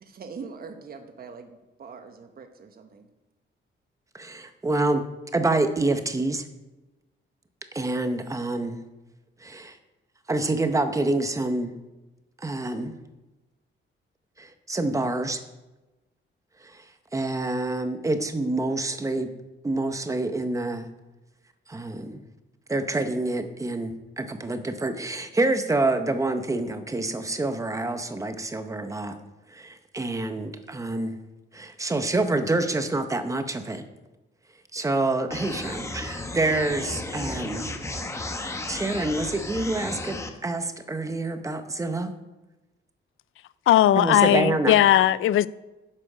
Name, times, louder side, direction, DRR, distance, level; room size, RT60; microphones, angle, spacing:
voice 1, 0.0-3.1, right 5 dB, 45° right, 1.1 m, -42 dB
voice 2, 4.1-5.0 5.3-6.4 7.7-8.8 9.4-9.7 10.3-11.7 12.4-12.9 14.4-15.4 17.1-19.3 19.6-20.9 21.7-22.2 22.7-29.1 29.5-31.2 31.5-33.8 34.7-37.7 38.6-42.1 43.9-44.8, right 2 dB, 15° right, 0.7 m, -27 dB
sound 1, 35.3-40.3, left 2 dB, 15° left, 0.9 m, -34 dB
voice 3, 43.7-45.5, left 12 dB, 80° left, 0.4 m, -18 dB
11.0 x 7.6 x 5.0 m
wide cardioid pair, 170°, 21 cm